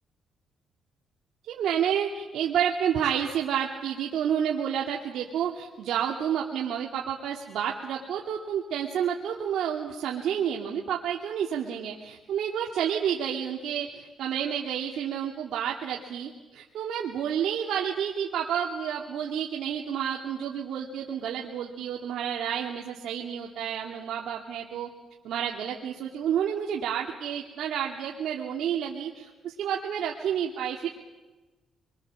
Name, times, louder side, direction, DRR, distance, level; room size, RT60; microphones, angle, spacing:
voice 1, 1.4-24.9 25.2-30.9, right 9 dB, 75° right, -1 dB, 2.3 m, -30 dB
25.5 x 23.0 x 7.5 m, 1.2 s
cardioid pair, 90°, 0 cm